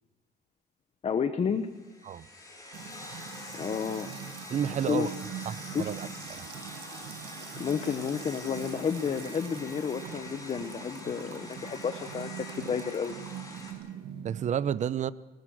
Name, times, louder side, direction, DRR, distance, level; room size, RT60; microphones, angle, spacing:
voice 1, 1.0-1.7 3.6-4.1 4.9-5.1 5.7-5.9 7.6-13.1, left 6 dB, 35° left, 1.2 m, -31 dB
sound 1, 1.7-13.7, left 2 dB, 20° left, 5.8 m, -45 dB
Music / Water tap faucet / Trickle dribble, 2.7-14.5, right 9 dB, 75° right, 1.5 m, -43 dB
voice 2, 4.5-5.1 5.5-6.1 6.4-6.5 14.2-15.1, right 9 dB, 45° right, 0.8 m, -30 dB
24.0 x 19.5 x 6.5 m
cardioid pair, 110°, 17 cm